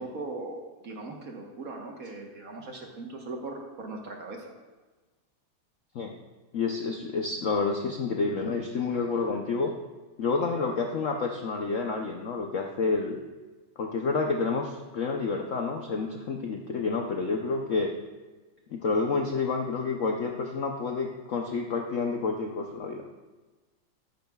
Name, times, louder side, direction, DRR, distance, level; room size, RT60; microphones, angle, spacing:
voice 1, 0.0-4.5, right 2 dB, 50° right, 1 dB, 1.4 m, -39 dB
voice 2, 6.5-9.7 10.2-13.2 13.8-17.9 18.7-23.0, left 4 dB, 85° left, 2 dB, 0.6 m, -29 dB
13.5 x 10.5 x 2.3 m, 1.2 s
omnidirectional pair, 2.3 m